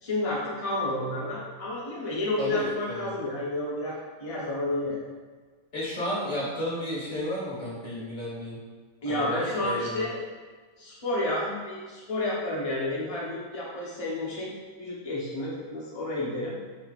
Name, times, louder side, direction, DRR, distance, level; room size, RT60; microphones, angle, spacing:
voice 1, 0.0-5.0 9.0-10.2 10.8-14.5 14.8-16.6, left 1 dB, 55° left, -7 dB, 0.4 m, -30 dB
voice 2, 2.4-3.1 5.7-8.6 9.0-10.0, left 1 dB, 25° left, -7 dB, 1.4 m, -33 dB
5.3 x 2.4 x 4.0 m, 1.5 s
omnidirectional pair, 1.9 m